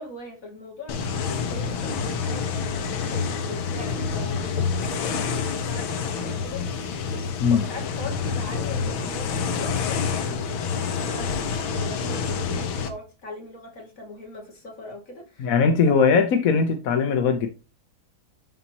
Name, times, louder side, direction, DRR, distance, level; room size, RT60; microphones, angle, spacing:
voice 1, 0.0-6.7 7.1-15.5 15.9-16.0, left 2 dB, 40° left, 2.7 m, -40 dB
sound 1, 0.9-12.9, left 5 dB, 75° left, 1.7 m, -28 dB
voice 2, 15.4-17.5, left 5 dB, 60° left, 1.0 m, -20 dB
11.5 x 4.2 x 3.0 m
omnidirectional pair, 2.3 m